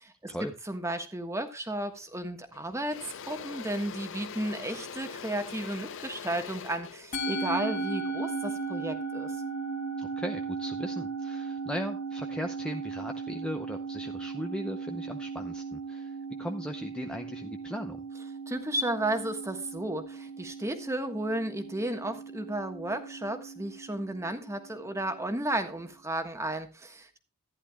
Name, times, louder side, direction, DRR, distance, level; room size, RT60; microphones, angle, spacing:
voice 1, 0.0-0.4 0.7-3.0 3.2-9.4 18.5-27.2, right 1 dB, 15° right, 7 dB, 1.3 m, -33 dB
Engine / Drill, 2.0-2.2 2.5-8.7, left 6 dB, 55° left, 0.5 m, -43 dB
Musical instrument, 7.1-25.6, right 4 dB, 35° left, 2.0 m, -37 dB
voice 2, 10.0-18.0, equal, 5° left, 4 dB, 0.7 m, -38 dB
14.5 x 10.5 x 2.3 m, 0.29 s
head